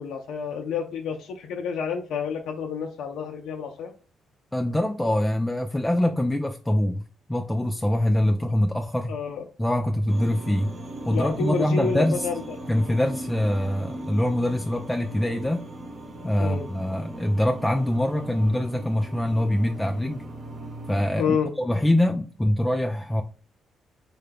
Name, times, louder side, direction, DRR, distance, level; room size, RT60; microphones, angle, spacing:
voice 1, 0.0-3.9 9.1-9.5 11.1-12.6 16.4-16.7 21.2-21.5, left 6 dB, 75° left, 0.4 m, -29 dB
voice 2, 4.5-9.1 9.6-10.8 11.1-12.3 12.7-15.7 16.2-20.3 20.9-23.2, left 1 dB, 10° left, 0.3 m, -24 dB
sound 1, 10.1-21.0, right 1 dB, 45° right, 0.9 m, -38 dB
3.8 x 2.2 x 3.4 m
cardioid pair, 90°, 0 cm